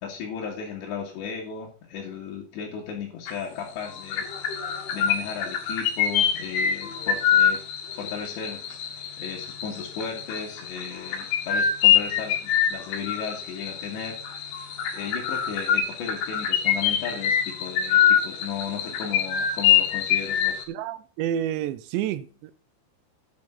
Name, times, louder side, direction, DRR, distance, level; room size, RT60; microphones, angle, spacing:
voice 1, 0.0-4.2 4.9-7.6 7.9-8.6 9.2-14.2 14.9-20.6, left 6 dB, 75° left, 4.2 m, -35 dB
sound 1, 3.3-3.6 3.8-20.6, left 9 dB, 90° left, 4.2 m, -25 dB
voice 2, 20.7-22.5, right 10 dB, 85° right, 2.9 m, -29 dB
9.6 x 7.6 x 5.8 m
omnidirectional pair, 5.3 m